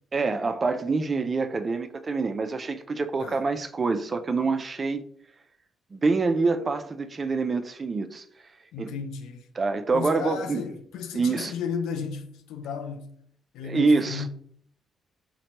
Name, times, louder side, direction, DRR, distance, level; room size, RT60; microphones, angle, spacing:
voice 1, 0.1-5.0 5.9-8.2 8.8-8.9 9.6-10.6 11.1-11.5 13.6-14.3, right 4 dB, 35° right, 0.3 m, -26 dB
voice 2, 8.7-9.5 9.9-13.1 13.5-14.3, left 6 dB, 90° left, 0.4 m, -34 dB
4.1 x 2.2 x 2.9 m
cardioid pair, 90°, 0 cm